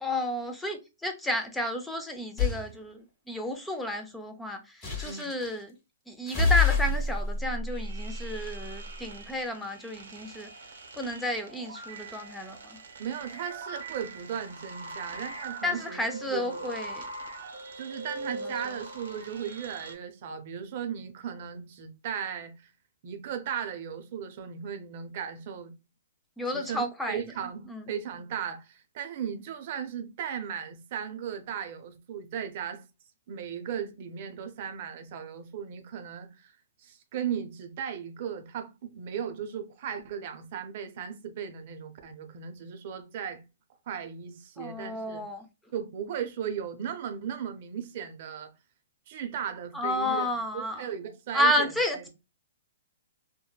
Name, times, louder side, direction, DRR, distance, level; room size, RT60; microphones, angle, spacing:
voice 1, 0.0-5.8 6.1-10.5 11.0-12.8 15.6-17.0 26.4-27.2 27.7-27.8 44.6-45.4 49.7-50.8 51.3-52.1, left 1 dB, 5° left, 0.4 m, -31 dB
sound 1, 2.4-2.7 4.8-5.5 6.3-8.9, left 4 dB, 25° left, 1.1 m, -28 dB
sound 2, 7.7-19.9, right 2 dB, 80° right, 0.7 m, -42 dB
voice 2, 13.0-16.7 17.8-22.7 23.0-25.7 26.5-32.8 33.3-36.5 36.8-43.4 43.9-45.2 45.7-48.5 49.1-52.1, right 8 dB, 50° right, 0.5 m, -36 dB
3.1 x 2.1 x 2.2 m
hypercardioid pair, 140°, 0 cm